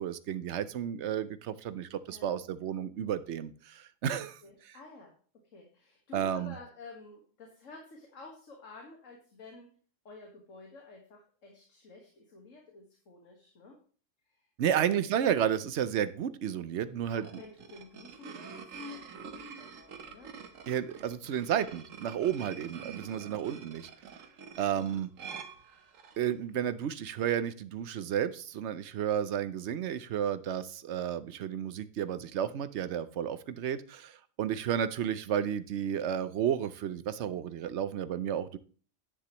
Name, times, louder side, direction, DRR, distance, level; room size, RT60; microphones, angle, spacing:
voice 1, 0.0-4.4 6.1-6.5 14.6-17.3 20.7-23.9 24.6-25.1 26.2-38.6, right 9 dB, 65° right, 14 dB, 0.9 m, -32 dB
voice 2, 4.4-5.1 5.5-9.7 10.1-13.8 14.3-15.0 16.9-20.3, left 3 dB, 80° left, 1 dB, 2.0 m, -51 dB
sound 1, 17.0-26.3, right 5 dB, 85° right, 1.4 m, -46 dB
10.0 x 9.7 x 3.0 m, 0.41 s
omnidirectional pair, 1.3 m